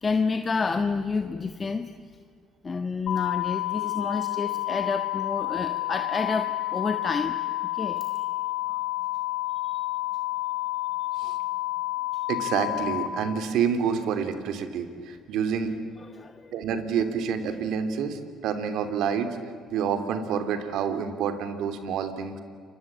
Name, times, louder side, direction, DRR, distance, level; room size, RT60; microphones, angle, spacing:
voice 1, 0.0-1.9 2.6-7.4 7.7-8.3 8.7-8.8 9.6-9.8 11.2-11.4 12.1-12.3 16.0-16.5, left 4 dB, 30° left, 8 dB, 1.5 m, -29 dB
sound 1, 3.1-13.1, left 17 dB, 65° left, 2.1 m, -30 dB
voice 2, 12.3-15.7 16.5-19.4 19.7-22.4, right 7 dB, 75° right, 9 dB, 3.0 m, -28 dB
29.0 x 23.5 x 8.8 m, 2.1 s
cardioid pair, 90°, 0 cm